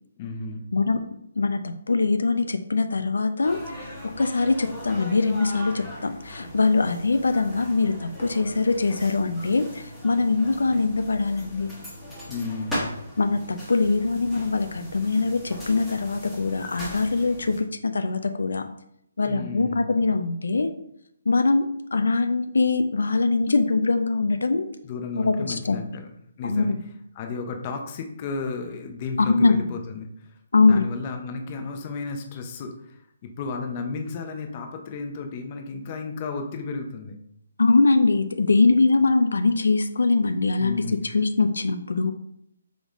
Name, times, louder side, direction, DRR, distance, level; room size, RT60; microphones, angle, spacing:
voice 1, 0.2-0.7 12.3-13.0 19.2-19.9 24.8-26.1 26.4-26.8 27.1-30.1 30.6-37.2 40.5-41.0, left 4 dB, 30° left, 4 dB, 0.6 m, -33 dB
voice 2, 1.4-3.8 4.2-11.7 13.2-18.7 19.2-20.7 21.3-24.7 25.2-25.8 26.4-26.8 29.2-29.6 30.5-30.9 37.6-40.8 41.1-42.1, left 3 dB, 85° left, 8 dB, 0.4 m, -22 dB
sound 1, 3.4-17.6, equal, ahead, 1.1 m, -39 dB
3.8 x 3.6 x 3.5 m, 0.75 s
hypercardioid pair, 165°, 0 cm